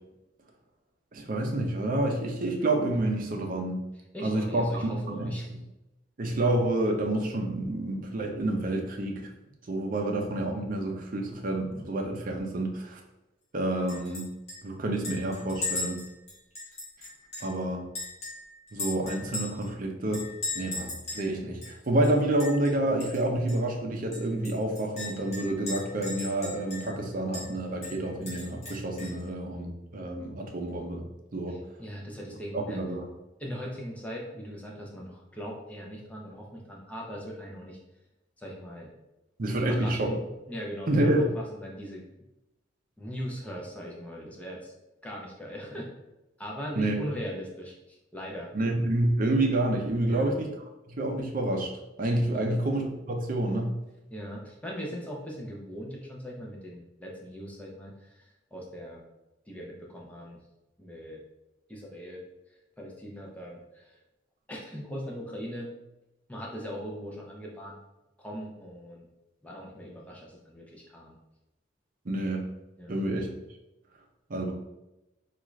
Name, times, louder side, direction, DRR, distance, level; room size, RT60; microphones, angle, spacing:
voice 1, 1.1-3.8 4.2-5.3 6.2-9.3 9.7-13.0 13.5-14.3 14.6-16.0 17.4-17.8 18.7-20.2 20.5-31.1 31.3-31.6 32.5-33.1 39.4-40.2 40.9-41.3 46.7-47.0 48.5-50.5 50.9-51.7 52.0-53.7 72.0-72.5 72.9-73.3 74.3-74.5, right 1 dB, 45° right, 2 dB, 0.5 m, -28 dB
voice 2, 4.1-5.5 31.5-32.8 33.4-37.8 38.4-38.9 39.6-40.2 40.5-42.0 43.0-44.7 45.0-45.9 46.4-48.5 50.0-50.3 52.3-52.6 54.1-59.0 59.5-60.4 60.8-61.2 61.7-62.2 62.8-64.0 64.5-65.7 66.3-67.8 68.2-69.1 69.4-71.2 72.8-73.0, equal, 5° left, -2 dB, 0.6 m, -40 dB
Chink clink, 13.9-14.2 14.5-14.6 15.0-17.5 17.9-19.7 20.1-21.3 21.6-21.7 22.0-22.7 23.0-23.2 23.5-23.6 24.1-27.0 27.3-27.5 27.8-29.2, left 2 dB, 35° left, 1.2 m, -37 dB
3.6 x 2.4 x 3.1 m, 0.95 s
head